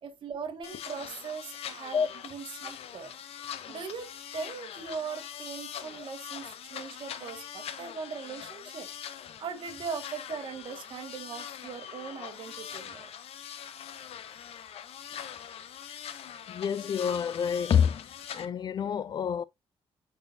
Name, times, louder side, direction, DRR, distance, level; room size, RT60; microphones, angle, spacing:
voice 1, 0.0-3.1 3.7-8.9 9.4-13.1, right 5 dB, 55° right, 1.7 m, -40 dB
sound 1, 0.6-18.5, left 9 dB, 75° left, 0.8 m, -43 dB
voice 2, 16.5-18.1 18.3-19.4, left 7 dB, 45° left, 0.4 m, -27 dB
8.8 x 4.4 x 2.6 m
wide cardioid pair, 160°, 10 cm